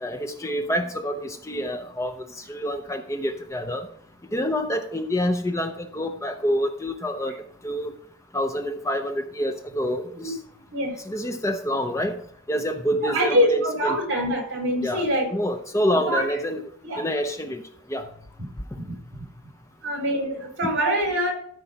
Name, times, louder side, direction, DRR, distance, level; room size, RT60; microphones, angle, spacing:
voice 1, 0.0-3.9 4.3-7.4 7.6-8.0 8.3-10.4 11.1-12.2 12.5-14.0 14.8-16.6 17.0-17.6 17.9-18.1 20.6-20.7, equal, 15° left, 6 dB, 0.5 m, -27 dB
voice 2, 13.0-15.3 16.1-16.2 16.9-17.0 18.8-19.3 19.8-21.3, equal, 55° right, 0 dB, 4.0 m, -24 dB
13.0 x 4.7 x 5.7 m, 0.64 s
head